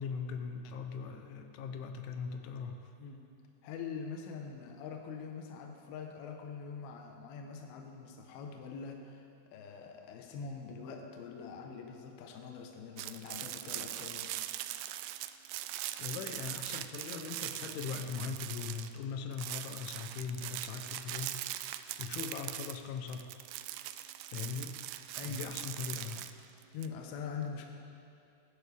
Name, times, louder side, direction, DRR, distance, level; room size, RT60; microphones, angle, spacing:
voice 1, 0.0-2.9 16.0-21.4 22.0-23.3 24.3-24.8 25.2-26.3, left 6 dB, 85° left, 5 dB, 3.3 m, -40 dB
voice 2, 3.6-9.3 9.5-14.3 25.2-25.5 26.7-27.7, left 5 dB, 70° left, 2 dB, 2.6 m, -43 dB
sound 1, 13.0-19.0 19.3-26.9, right 14 dB, 90° right, 2.3 m, -41 dB
20.5 x 11.0 x 3.5 m, 2.6 s
omnidirectional pair, 5.3 m